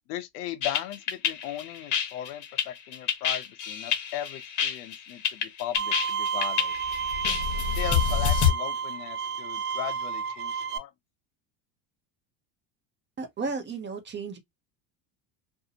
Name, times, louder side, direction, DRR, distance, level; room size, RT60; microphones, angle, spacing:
voice 1, 0.1-6.7 7.8-10.9, left 12 dB, 80° left, 0.7 m, -37 dB
sound 1, 0.6-8.5, left 8 dB, 40° left, 0.8 m, -27 dB
Bowed string instrument, 5.8-10.8, right 6 dB, 55° right, 0.8 m, -31 dB
voice 2, 13.2-14.4, right 4 dB, 25° right, 0.6 m, -33 dB
2.5 x 2.0 x 2.7 m
supercardioid pair, 100°, 48 cm